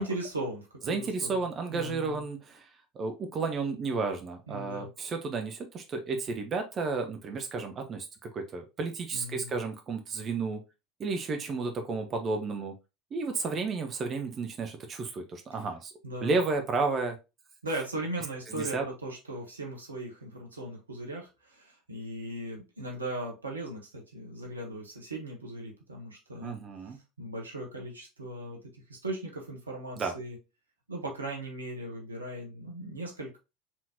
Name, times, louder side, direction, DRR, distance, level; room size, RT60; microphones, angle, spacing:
voice 1, 0.0-1.4 1.7-2.2 4.5-4.9 9.1-9.5 16.0-16.3 17.6-26.6 27.2-30.4 30.9-33.4, right 1 dB, 80° right, 1.2 m, -38 dB
voice 2, 0.9-2.7 2.9-10.6 11.0-12.7 13.1-15.9 16.2-17.2 18.5-18.8 26.4-27.0 30.0-30.1, right 4 dB, 35° right, 0.8 m, -32 dB
4.4 x 3.8 x 2.8 m
figure-of-eight pair, 70°, 0 cm